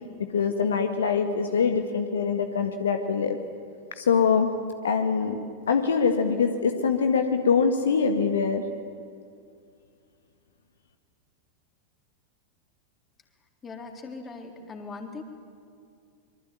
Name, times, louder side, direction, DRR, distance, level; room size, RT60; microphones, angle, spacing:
voice 1, 0.3-3.4 4.0-4.6 4.8-5.4 5.7-8.6, left 5 dB, 65° left, 6 dB, 1.7 m, -23 dB
voice 2, 13.6-15.2, left 4 dB, 20° left, 4 dB, 3.6 m, -40 dB
25.5 x 23.5 x 9.3 m, 2.3 s
figure-of-eight pair, 90°, 0 cm